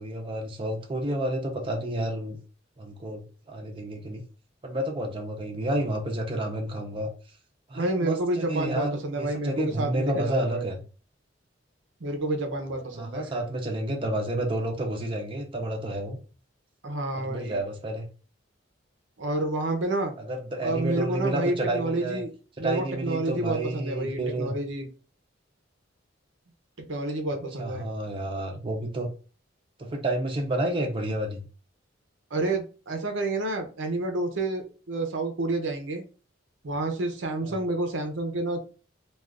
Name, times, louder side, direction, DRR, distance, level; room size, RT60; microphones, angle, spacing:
voice 1, 0.0-2.4 2.8-4.2 4.6-7.1 7.7-10.8 12.9-16.2 17.1-18.1 20.2-22.2 22.6-24.6 27.6-29.1 29.8-31.4 37.4-37.6, right 1 dB, 25° right, 1 dB, 0.5 m, -30 dB
voice 2, 7.7-10.7 12.0-13.3 16.8-17.6 19.2-20.1 20.6-22.3 22.6-24.9 26.8-27.8 32.3-36.0 36.6-38.6, right 2 dB, 70° right, 4 dB, 0.6 m, -29 dB
2.4 x 2.4 x 3.5 m, 0.36 s
head